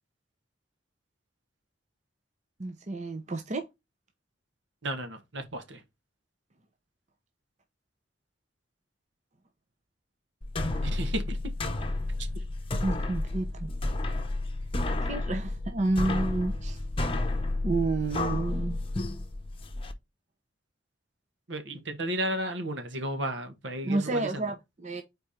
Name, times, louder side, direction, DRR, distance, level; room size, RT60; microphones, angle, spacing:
voice 1, 2.6-3.6 12.8-13.7 15.1-16.8 17.6-18.8 23.8-25.0, right 2 dB, 40° right, 0.8 m, -30 dB
voice 2, 4.8-5.8 10.8-11.5 21.5-24.5, right 1 dB, 80° right, 1.4 m, -33 dB
sound 1, 10.4-19.9, left 2 dB, 30° left, 0.9 m, -31 dB
4.6 x 4.2 x 5.0 m
head